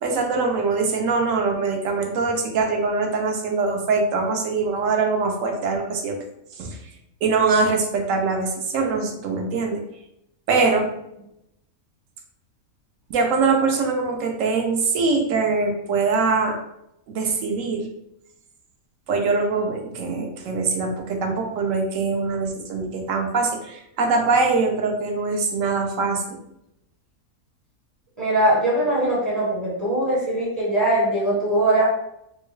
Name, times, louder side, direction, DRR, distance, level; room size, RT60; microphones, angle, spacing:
voice 1, 0.0-6.2 6.6-6.8 7.2-9.8 10.5-10.9 13.1-16.6 17.1-17.9 19.1-26.4, right 4 dB, 70° right, 3 dB, 0.9 m, -23 dB
voice 2, 28.2-31.9, right 1 dB, 20° right, -5 dB, 0.6 m, -21 dB
3.7 x 2.2 x 3.1 m, 0.81 s
omnidirectional pair, 1.5 m